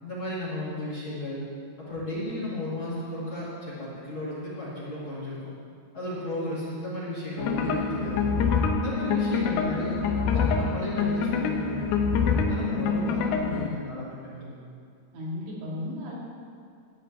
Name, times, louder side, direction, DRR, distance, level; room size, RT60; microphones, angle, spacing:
voice 1, 0.0-1.4 1.8-5.5 5.9-8.3 8.8-11.9 12.3-14.5, left 1 dB, 35° left, -9 dB, 2.4 m, -34 dB
sound 1, 7.4-13.7, left 5 dB, 80° left, 2.3 m, -26 dB
voice 2, 12.8-13.7 15.1-16.2, left 1 dB, 85° right, -5 dB, 4.5 m, -35 dB
13.5 x 5.0 x 8.7 m, 2.3 s
omnidirectional pair, 4.8 m